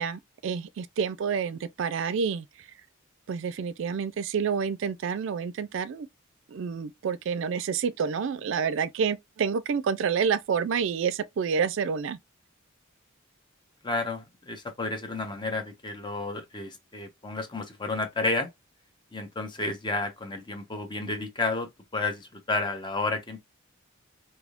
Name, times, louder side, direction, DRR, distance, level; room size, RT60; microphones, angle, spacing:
voice 1, 0.0-2.7 3.3-6.1 6.5-12.2, right 6 dB, 65° right, 0.3 m, -28 dB
voice 2, 13.8-18.5 19.1-23.4, left 3 dB, 20° left, 0.7 m, -31 dB
3.4 x 2.7 x 2.3 m
head